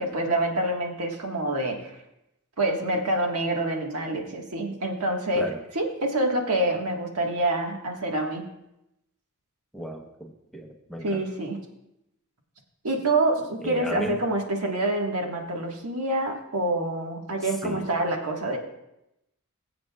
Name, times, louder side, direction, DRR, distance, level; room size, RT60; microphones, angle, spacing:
voice 1, 0.0-1.9 2.6-5.4 5.7-8.4 11.0-11.6 12.8-18.6, right 1 dB, 85° right, 1 dB, 1.6 m, -26 dB
voice 2, 9.7-11.2 13.6-14.2 17.4-17.9, equal, ahead, 1 dB, 0.9 m, -35 dB
21.0 x 7.7 x 2.4 m, 0.88 s
head